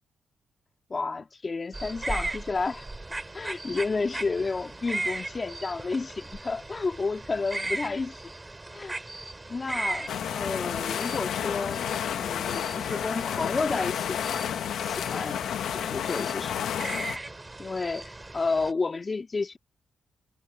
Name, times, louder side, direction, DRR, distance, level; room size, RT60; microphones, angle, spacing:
voice 1, 0.9-2.9 3.3-8.3 8.7-9.0 9.5-11.8 12.1-14.5 14.8-15.4 15.7-17.2 17.6-19.6, left 4 dB, 30° left, 2.6 m, -31 dB
sound 1, 1.7-18.7, right 2 dB, 15° right, 6.2 m, -38 dB
sound 2, 10.1-17.2, left 9 dB, 85° left, 1.2 m, -31 dB
cardioid pair, 120°, 0 cm